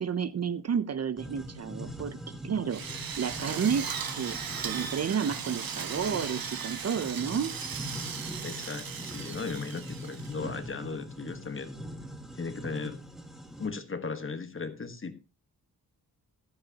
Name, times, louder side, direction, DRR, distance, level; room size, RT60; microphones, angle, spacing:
voice 1, 0.0-2.2 2.4-2.8 3.2-4.4 4.6-7.5, right 7 dB, 45° right, 14 dB, 0.5 m, -31 dB
sound 1, 1.2-13.7, equal, ahead, 1.5 m, -42 dB
Drill, 2.7-10.6, right 7 dB, 65° right, 1.3 m, -37 dB
voice 2, 8.4-11.7 12.4-13.0 13.6-15.2, left 4 dB, 35° left, 9 dB, 1.3 m, -37 dB
14.0 x 11.5 x 2.8 m, 0.28 s
wide cardioid pair, 135°, 37 cm